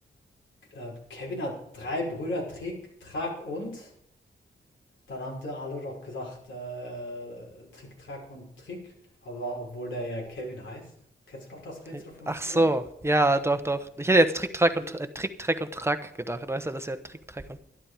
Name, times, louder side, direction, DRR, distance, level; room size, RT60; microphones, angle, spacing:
voice 1, 0.7-3.9 5.1-8.8 9.2-10.8 11.3-12.7, left 1 dB, 80° left, -1 dB, 6.0 m, -36 dB
voice 2, 11.9-17.6, right 1 dB, 15° right, 9 dB, 1.1 m, -26 dB
12.0 x 12.0 x 5.1 m, 0.74 s
wide cardioid pair, 120°, 20 cm